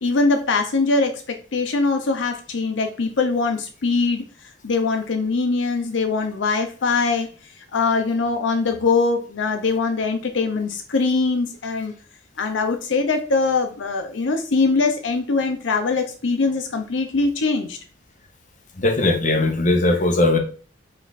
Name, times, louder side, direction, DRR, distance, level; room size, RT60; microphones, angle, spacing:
voice 1, 0.0-4.2 4.6-7.3 7.7-11.9 12.4-17.8, left 3 dB, 75° left, 5 dB, 0.6 m, -22 dB
voice 2, 18.8-20.4, left 2 dB, 40° left, 4 dB, 0.8 m, -19 dB
5.3 x 2.5 x 4.0 m, 0.39 s
head